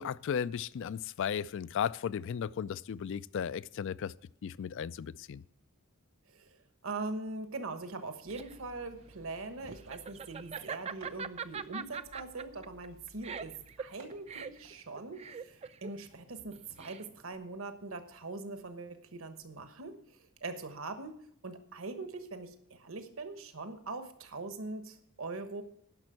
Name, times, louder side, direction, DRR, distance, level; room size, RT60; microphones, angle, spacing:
voice 1, 0.0-4.1 4.4-5.4, left 8 dB, 60° left, 0.3 m, -35 dB
voice 2, 6.8-21.2 21.4-25.6, right 3 dB, 65° right, 1.2 m, -42 dB
Laughter, 7.9-17.3, right 6 dB, 30° right, 0.4 m, -43 dB
sound 1, 8.2-14.7, right 1 dB, 90° right, 3.5 m, -59 dB
10.5 x 6.1 x 7.7 m
head